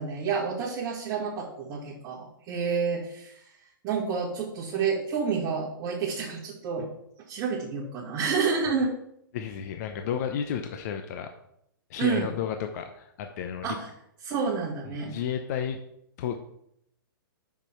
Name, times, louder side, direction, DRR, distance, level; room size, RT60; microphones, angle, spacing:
voice 1, 0.0-3.3 3.8-6.8 7.3-8.9 12.0-12.3 13.6-13.9 14.2-15.1, right 5 dB, 30° right, -6 dB, 2.0 m, -29 dB
voice 2, 9.3-11.3 11.9-13.8 14.9-15.8 16.2-16.4, left 8 dB, 45° left, 6 dB, 0.7 m, -32 dB
6.9 x 6.0 x 4.5 m, 0.75 s
hypercardioid pair, 125°, 12 cm